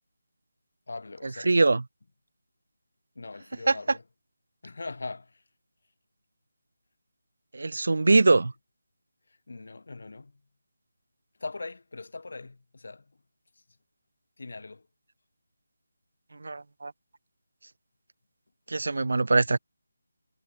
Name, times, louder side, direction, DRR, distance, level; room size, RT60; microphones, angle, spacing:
voice 1, 0.9-1.6 3.2-4.0 4.6-5.4 8.4-8.5 9.5-10.3 11.4-13.1 14.4-14.9 19.3-19.6, left 3 dB, 60° left, 4.1 m, -41 dB
voice 2, 1.5-1.8 3.7-3.8 7.5-8.5 16.4-16.9 18.7-19.6, right 3 dB, 60° right, 0.4 m, -22 dB
figure-of-eight pair, 175°, 0 cm